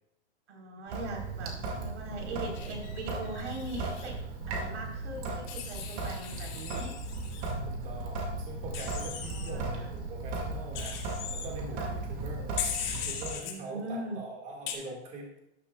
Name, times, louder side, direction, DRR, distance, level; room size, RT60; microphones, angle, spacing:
voice 1, 0.5-4.2 4.5-6.9 9.2-9.9 11.7-11.9 13.4-14.2, right 2 dB, 85° right, 1 dB, 4.0 m, -40 dB
Sink (filling or washing) / Drip, 0.9-13.3, right 3 dB, 35° right, 2.1 m, -36 dB
Wild animals, 2.5-4.1 5.5-7.5 8.7-9.5 10.7-11.5 12.6-13.5 14.7-14.8, left 8 dB, 45° left, 2.3 m, -39 dB
voice 2, 7.7-12.6 12.9-15.3, right 2 dB, 20° right, -1 dB, 1.9 m, -43 dB
12.5 x 11.5 x 2.3 m, 0.82 s
supercardioid pair, 160°, 34 cm